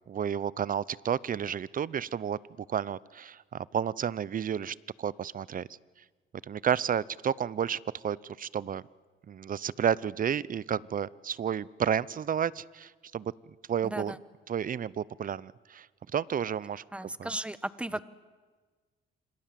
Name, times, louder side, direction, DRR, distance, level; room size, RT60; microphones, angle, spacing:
voice 1, 0.0-2.4 2.7-5.7 6.4-8.8 9.3-13.3 13.7-14.1 14.5-15.9 16.1-17.3 17.9-18.0, right 8 dB, 45° right, 21 dB, 0.7 m, -31 dB
voice 2, 16.9-18.0, right 1 dB, 5° right, 15 dB, 1.2 m, -35 dB
26.5 x 26.0 x 7.6 m, 1.4 s
cardioid pair, 90°, 20 cm